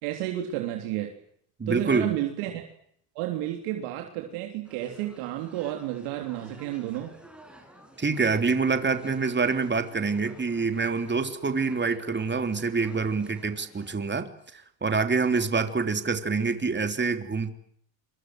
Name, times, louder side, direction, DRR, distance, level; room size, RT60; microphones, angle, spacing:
voice 1, 0.0-1.2 1.7-2.7 3.2-7.1, right 13 dB, 85° right, 3 dB, 3.7 m, -31 dB
voice 2, 1.6-2.1 8.0-17.5, right 4 dB, 20° right, 7 dB, 3.5 m, -26 dB
sound 1, 4.6-13.9, right 1 dB, ahead, 7.9 m, -52 dB
27.0 x 24.5 x 7.9 m, 0.67 s
cardioid pair, 100°, 49 cm